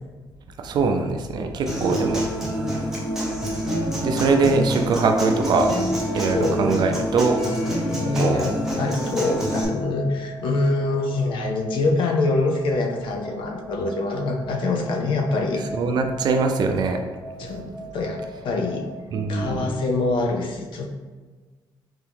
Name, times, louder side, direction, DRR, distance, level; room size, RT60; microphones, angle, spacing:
voice 1, 0.6-2.2 4.0-5.8 6.1-7.4 8.2-8.5 15.7-17.0 17.4-17.5 19.1-19.7, right 4 dB, 55° right, 5 dB, 0.4 m, -22 dB
sound 1, 1.6-19.6, equal, 80° right, 0.8 m, -40 dB
Human voice / Acoustic guitar, 1.7-9.6, equal, 5° right, 0.8 m, -27 dB
voice 2, 6.3-7.2 7.5-8.5 8.8-15.6 17.4-18.8 19.3-20.9, left 3 dB, 70° left, 2 dB, 0.5 m, -25 dB
3.5 x 2.8 x 3.4 m, 1.4 s
cardioid pair, 130°, 9 cm